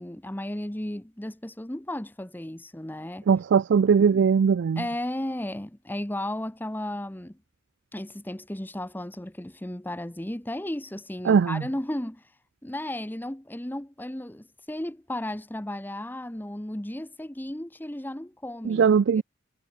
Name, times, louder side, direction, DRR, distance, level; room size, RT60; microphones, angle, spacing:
voice 1, 0.0-3.3 4.8-7.4 7.9-12.2 12.6-18.9 19.1-19.2, left 1 dB, 10° left, 0.9 m, -34 dB
voice 2, 3.3-4.8 11.3-11.6 18.7-19.2, right 6 dB, 60° right, 0.3 m, -20 dB
head